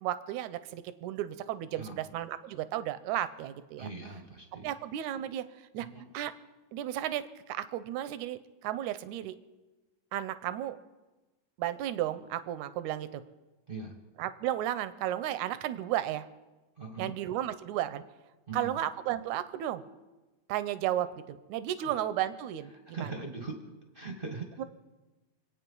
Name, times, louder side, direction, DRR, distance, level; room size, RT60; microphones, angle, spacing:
voice 1, 0.0-3.9 4.6-5.5 5.7-5.9 6.1-6.3 6.7-7.2 7.5-9.4 10.1-10.8 11.6-13.2 14.2-16.2 17.0-18.0 18.5-19.8 20.5-23.1 24.6-24.7, right 12 dB, 85° right, 13 dB, 2.0 m, -33 dB
voice 2, 1.7-2.0 3.8-4.7 5.8-6.0 13.7-13.9 16.8-17.1 18.5-18.7 21.8-21.9 22.9-23.6 23.9-24.6, right 4 dB, 45° right, 3 dB, 0.7 m, -40 dB
26.0 x 8.8 x 5.4 m, 1.2 s
omnidirectional pair, 3.4 m